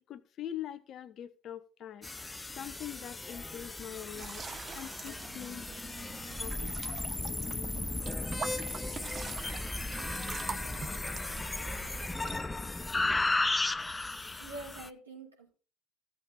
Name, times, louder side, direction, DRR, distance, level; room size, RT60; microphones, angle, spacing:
voice 1, 0.0-2.1 2.6-4.4 4.7-5.7 6.2-6.7, left 10 dB, 45° left, 1.0 m, -43 dB
sound 1, 2.0-14.9, left 2 dB, 15° left, 0.7 m, -35 dB
sound 2, 4.1-12.4, right 5 dB, 30° right, 0.9 m, -43 dB
voice 2, 14.4-15.5, right 2 dB, 80° right, 4.9 m, -45 dB
16.0 x 7.2 x 4.2 m
figure-of-eight pair, 65°, 0 cm